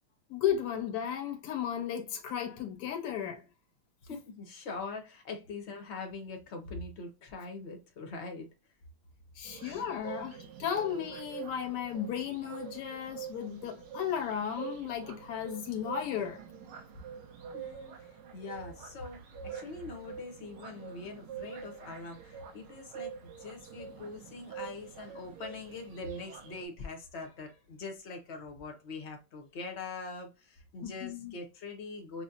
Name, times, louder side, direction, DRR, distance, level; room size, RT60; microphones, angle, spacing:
voice 1, 0.3-3.4 4.1-4.2 9.4-16.4 30.8-31.3, left 9 dB, 90° left, 1.8 m, -34 dB
voice 2, 4.0-8.5 9.6-10.2 17.5-32.2, left 3 dB, 65° left, 0.6 m, -43 dB
sound 1, 9.4-26.7, right 8 dB, 65° right, 1.2 m, -46 dB
6.0 x 2.1 x 2.7 m
omnidirectional pair, 2.4 m